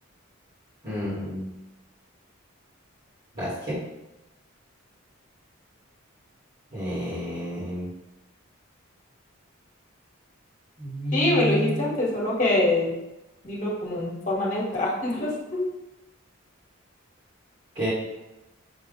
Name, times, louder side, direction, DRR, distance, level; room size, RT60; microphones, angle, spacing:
voice 1, 0.8-1.5 3.3-3.8 6.7-7.9 10.8-11.9 17.7-17.9, equal, 35° right, -9 dB, 1.4 m, -30 dB
voice 2, 11.1-12.9 13.4-15.7, left 1 dB, 35° left, -5 dB, 1.3 m, -25 dB
5.6 x 2.4 x 3.7 m, 0.98 s
head